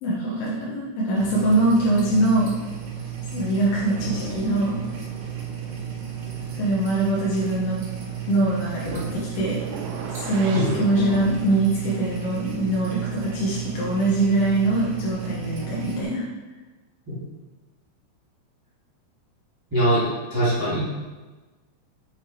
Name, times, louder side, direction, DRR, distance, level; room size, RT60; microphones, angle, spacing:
voice 1, 0.0-2.5 3.3-4.8 6.6-7.8 8.3-9.6 10.1-16.2, right 2 dB, 75° left, -6 dB, 3.6 m, -23 dB
sound 1, 1.2-16.0, right 7 dB, 60° right, 3.3 m, -34 dB
sound 2, 9.6-10.9, right 5 dB, 85° right, 2.5 m, -35 dB
voice 2, 19.7-20.9, right 1 dB, 15° right, -10 dB, 0.7 m, -22 dB
8.2 x 5.7 x 4.5 m, 1.2 s
omnidirectional pair, 5.7 m